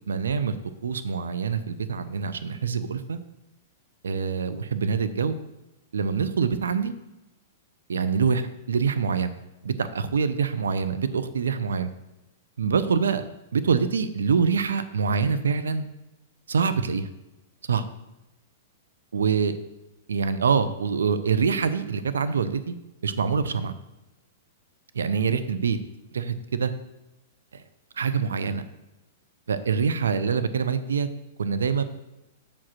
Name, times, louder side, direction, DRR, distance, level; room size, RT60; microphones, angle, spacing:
voice 1, 0.1-0.5 0.8-3.2 4.0-5.4 5.9-6.9 7.9-9.3 9.6-11.9 12.6-13.3 13.5-15.9 16.5-17.1 17.6-17.9 19.1-19.5 20.1-22.8 23.0-23.8 24.9-25.8 26.1-26.7 27.5-27.6 28.0-28.6 29.5-31.1 31.4-31.8, right 5 dB, 80° right, 12 dB, 0.5 m, -25 dB
7.1 x 5.0 x 5.7 m, 0.96 s
hypercardioid pair, 110°, 0 cm